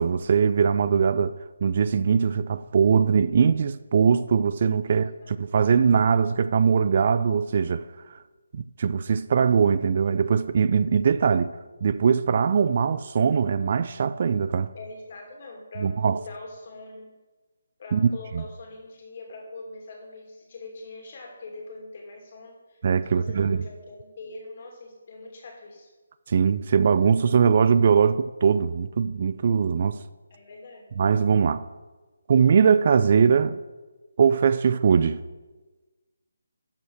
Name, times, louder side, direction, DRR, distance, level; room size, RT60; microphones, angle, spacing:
voice 1, 0.0-5.1 5.4-7.9 8.5-11.5 11.8-14.7 15.8-16.2 17.9-18.0 18.3-18.4 22.8-23.6 26.3-30.0 31.0-31.7 32.3-33.6 34.2-35.2, right 6 dB, 45° right, 0.4 m, -21 dB
voice 2, 4.9-5.3 14.7-17.1 17.8-25.9 30.3-30.9, left 2 dB, 45° left, 2.8 m, -42 dB
12.0 x 5.5 x 6.3 m
figure-of-eight pair, 155°, 0 cm